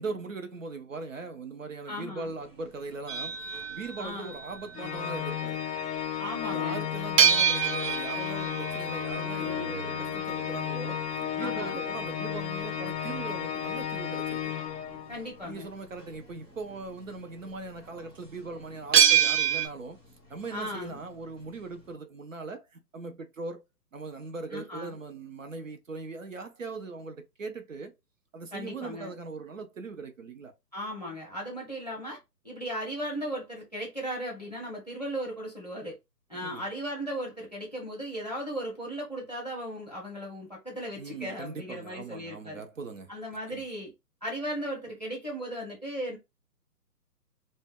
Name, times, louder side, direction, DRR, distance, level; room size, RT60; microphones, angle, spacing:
voice 1, 0.0-3.4 3.7-5.6 6.5-11.0 11.3-14.5 15.4-20.0 20.3-23.6 23.9-27.9 28.3-30.5 36.3-36.6 41.0-43.1 43.5-43.6, right 4 dB, 55° right, 0.5 m, -40 dB
voice 2, 1.9-2.3 4.0-4.3 6.2-6.9 11.4-11.8 15.1-15.7 20.5-21.0 24.5-25.0 28.5-29.1 30.7-32.2 32.4-35.9 36.3-42.6 43.1-43.9 44.2-46.2, equal, 25° left, 0.5 m, -36 dB
sound 1, 2.2-21.9, equal, 10° right, 0.7 m, -53 dB
sound 2, 3.1-5.3 7.2-13.8 18.9-19.7, right 8 dB, 80° right, 0.8 m, -27 dB
Organ, 4.7-15.4, left 9 dB, 75° left, 0.5 m, -33 dB
2.1 x 2.0 x 3.4 m
hypercardioid pair, 170°, 49 cm